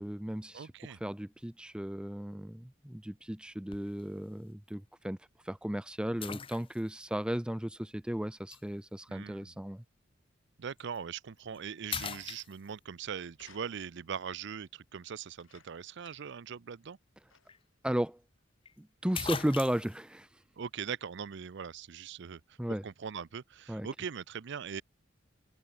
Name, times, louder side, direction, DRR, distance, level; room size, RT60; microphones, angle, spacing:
voice 1, 0.0-9.8 17.8-18.2 18.8-20.4 22.6-22.8 23.7-23.9, equal, 5° right, 0.5 m, -35 dB
voice 2, 0.5-1.0 9.1-9.5 10.6-17.0 20.6-24.8, right 7 dB, 65° right, 0.5 m, -41 dB
sound 1, 3.7-4.0 4.7-4.8 6.2-7.0 8.5-8.6 10.8-11.0 11.4-11.6 11.9-13.0 17.1-17.2 17.5-17.6 18.7-18.8 19.1-20.0, left 7 dB, 30° left, 0.7 m, -40 dB
sound 2, 13.3-14.1 15.2-16.5 16.8-16.9 17.3-17.7 18.5-18.6, left 6 dB, 90° left, 6.0 m, -62 dB
head